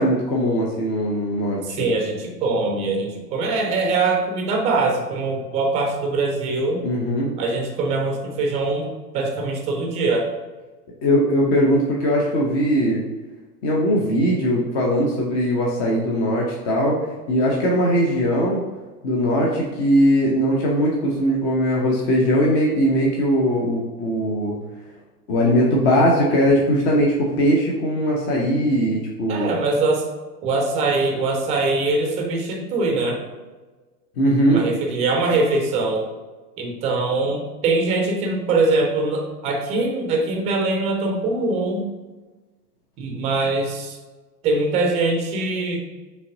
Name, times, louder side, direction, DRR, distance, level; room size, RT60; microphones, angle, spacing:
voice 1, 0.0-1.9 6.8-7.3 11.0-13.1 13.6-17.0 17.3-18.6 19.0-24.6 25.3-29.5 34.2-34.6, equal, 40° left, -2 dB, 0.8 m, -20 dB
voice 2, 1.6-6.8 7.4-8.9 9.1-10.3 29.3-30.1 30.4-33.2 34.5-36.1 36.6-41.8 43.0-44.0 44.4-45.8, right 3 dB, 15° right, 3 dB, 0.4 m, -22 dB
5.5 x 3.2 x 2.7 m, 1.3 s
figure-of-eight pair, 90°, 47 cm